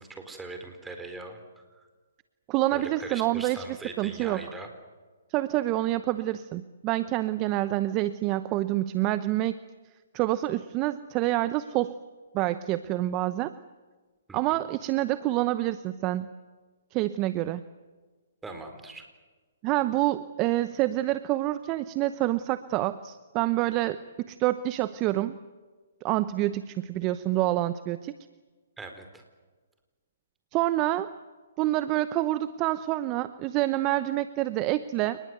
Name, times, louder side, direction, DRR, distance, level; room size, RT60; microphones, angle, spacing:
voice 1, 0.0-1.4 1.7-1.9 2.7-4.7 14.3-14.4 18.4-19.1 28.8-29.2, right 3 dB, 10° right, 5 dB, 4.3 m, -41 dB
voice 2, 2.5-4.4 5.3-9.6 10.1-11.9 12.3-13.5 14.3-16.3 16.9-17.6 19.6-24.0 24.3-25.4 26.0-28.1 30.5-31.1 31.6-35.2, right 15 dB, 30° right, 14 dB, 0.9 m, -27 dB
29.5 x 20.5 x 8.0 m, 1.4 s
hypercardioid pair, 140°, 0 cm